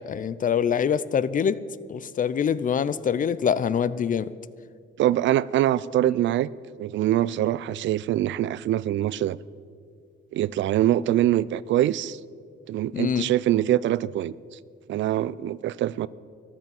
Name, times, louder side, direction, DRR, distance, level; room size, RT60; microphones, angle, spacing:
voice 1, 0.0-1.6 1.9-4.3 12.9-13.3, left 7 dB, 40° left, 17 dB, 0.5 m, -24 dB
voice 2, 5.0-6.5 6.8-9.4 10.3-12.2 12.7-14.6 14.9-16.1, right 13 dB, 70° right, 20 dB, 0.4 m, -24 dB
14.0 x 11.0 x 7.0 m, 2.1 s
cardioid pair, 90°, 20 cm